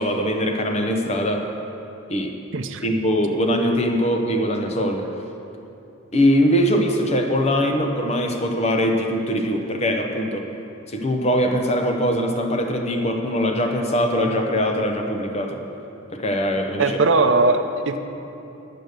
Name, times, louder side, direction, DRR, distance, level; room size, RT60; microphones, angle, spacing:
voice 1, 0.0-1.5 2.1-2.4 2.8-5.1 6.1-10.5 10.9-15.6 16.1-17.0, equal, 30° left, 3 dB, 0.8 m, -22 dB
voice 2, 2.5-2.8 16.8-18.0, right 3 dB, 65° right, 7 dB, 0.6 m, -19 dB
10.5 x 6.8 x 6.5 m, 2.8 s
head